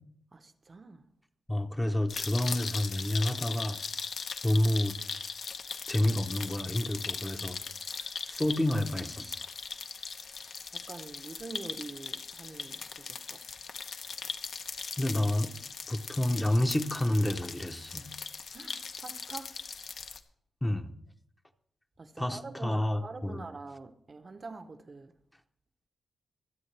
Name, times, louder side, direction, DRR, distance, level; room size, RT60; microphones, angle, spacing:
voice 1, 0.3-1.0 10.7-13.4 18.5-19.5 22.0-25.1, right 3 dB, 30° right, 0.8 m, -45 dB
voice 2, 1.5-3.8 4.4-5.0 5.9-7.6 8.3-9.4 15.0-15.5 15.9-18.1 20.6-20.9 22.2-23.5, left 1 dB, 10° left, 0.8 m, -29 dB
sound 1, 2.1-20.2, left 5 dB, 60° left, 0.9 m, -39 dB
25.5 x 8.5 x 3.3 m
wide cardioid pair, 140°, 0 cm